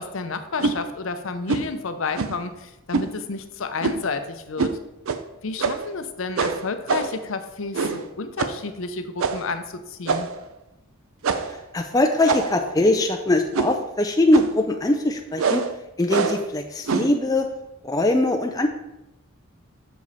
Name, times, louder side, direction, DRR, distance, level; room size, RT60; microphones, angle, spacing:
voice 1, 0.0-4.7 5.4-10.3, left 4 dB, 60° left, 9 dB, 0.6 m, -31 dB
sound 1, 0.6-0.8 1.5-1.7 2.2-2.5 2.9-3.1 3.8-4.1 4.6-4.8 5.1-5.2 5.6-5.9 6.4-7.2 7.7-8.1 8.4-8.6 9.2-9.5 10.1-10.4 11.2-11.6 12.3-12.7 13.5-13.9 14.3-14.6 15.4-15.7 16.1-16.5 16.9-17.2, right 5 dB, 65° right, 0.5 m, -25 dB
voice 2, 11.5-15.6 16.0-17.5 17.8-18.7, left 2 dB, 15° left, 4 dB, 0.4 m, -21 dB
6.9 x 5.1 x 4.1 m, 0.93 s
head